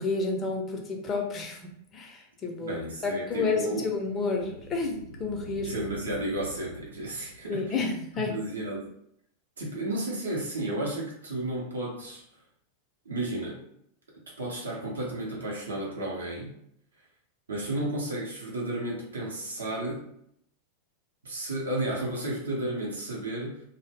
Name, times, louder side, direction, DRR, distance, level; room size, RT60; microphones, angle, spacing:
voice 1, 0.0-5.7 7.5-8.4, left 4 dB, 25° left, 1 dB, 0.5 m, -30 dB
sound 1, 2.6-8.1, left 1 dB, 90° left, 0.4 m, -46 dB
voice 2, 2.6-3.9 5.6-7.8 8.3-8.9 9.6-12.2 13.1-13.6 14.4-16.5 17.5-20.1 21.2-23.6, right 1 dB, 70° right, -3 dB, 0.6 m, -33 dB
2.0 x 2.0 x 3.3 m, 0.72 s
figure-of-eight pair, 90°, 0 cm